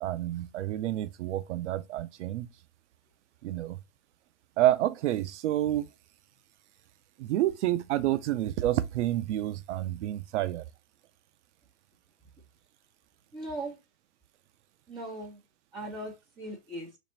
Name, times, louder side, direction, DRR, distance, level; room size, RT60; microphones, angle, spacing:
voice 1, 0.0-2.5 3.4-3.8 4.6-5.9 7.2-10.6, right 13 dB, 85° right, 0.5 m, -29 dB
voice 2, 13.3-13.8 14.9-15.4 15.7-16.9, right 1 dB, 15° right, 1.6 m, -38 dB
3.2 x 2.5 x 4.3 m
supercardioid pair, 160°, 34 cm